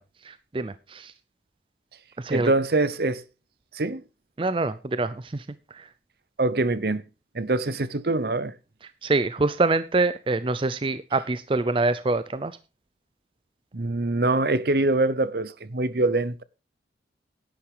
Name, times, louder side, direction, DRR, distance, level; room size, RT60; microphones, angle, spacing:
voice 1, 0.2-1.1 2.2-2.5 4.4-5.4 5.7-5.9 9.0-12.5, right 3 dB, 30° right, 0.5 m, -25 dB
voice 2, 2.3-3.2 3.7-4.0 6.4-7.0 7.3-8.5 13.7-16.4, right 2 dB, 60° right, 0.8 m, -24 dB
11.0 x 10.0 x 4.9 m
head